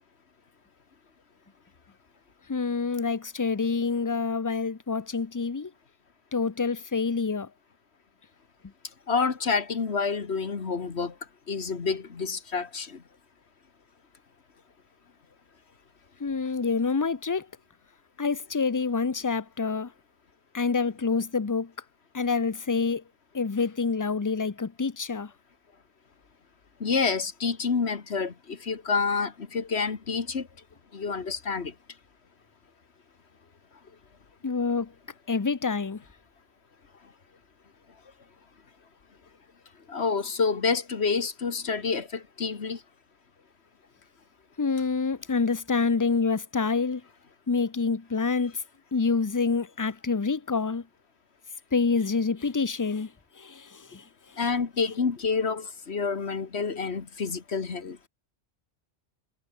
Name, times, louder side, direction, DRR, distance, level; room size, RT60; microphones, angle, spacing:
voice 1, 2.5-5.7 6.3-7.5 16.2-17.5 18.2-19.9 20.5-21.7 22.1-23.0 23.3-25.3 34.4-34.9 35.3-36.0 44.6-47.0 47.5-48.6 48.9-50.9 51.7-54.4, left 4 dB, 20° left, 0.5 m, -27 dB
voice 2, 9.1-11.2 11.5-13.0 26.8-30.5 30.9-31.7 39.9-42.8 54.4-58.0, left 5 dB, 65° left, 1.9 m, -28 dB
omnidirectional pair, 1.2 m